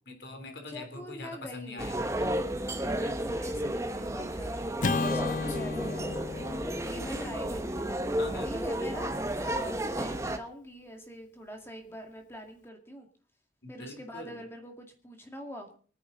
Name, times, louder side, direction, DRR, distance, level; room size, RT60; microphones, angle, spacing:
voice 1, 0.0-2.5 5.3-5.7 8.2-8.7 13.6-14.4, left 2 dB, 80° left, 5 dB, 3.4 m, -44 dB
voice 2, 0.7-1.9 2.7-6.2 6.7-8.0 8.4-13.1 13.7-15.8, equal, 15° left, 3 dB, 2.1 m, -44 dB
sound 1, 1.8-10.4, right 1 dB, 15° right, 1.0 m, -32 dB
Acoustic guitar / Strum, 4.8-9.2, left 3 dB, 45° left, 0.7 m, -35 dB
24.0 x 9.9 x 3.9 m, 0.40 s
head